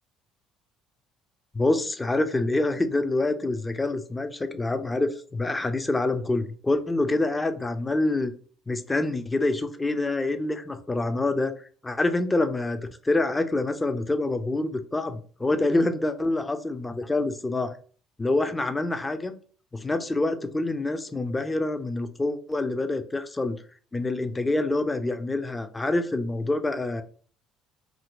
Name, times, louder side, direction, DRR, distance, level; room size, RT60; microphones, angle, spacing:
voice 1, 1.5-8.3 8.7-12.8 13.0-17.8 18.2-19.4 19.7-23.6 23.9-27.0, left 2 dB, 20° left, 8 dB, 0.4 m, -26 dB
2.7 x 2.5 x 2.9 m, 0.43 s
hypercardioid pair, 60°, 0 cm